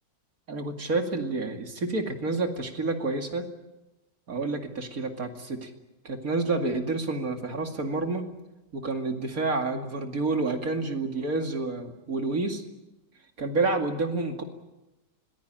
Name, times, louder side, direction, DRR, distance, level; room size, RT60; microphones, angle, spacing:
voice 1, 0.5-3.4 4.3-5.7 6.0-8.2 8.7-12.6 13.4-14.4, right 3 dB, 50° right, 4 dB, 2.8 m, -29 dB
25.5 x 20.0 x 9.0 m, 0.99 s
omnidirectional pair, 1.9 m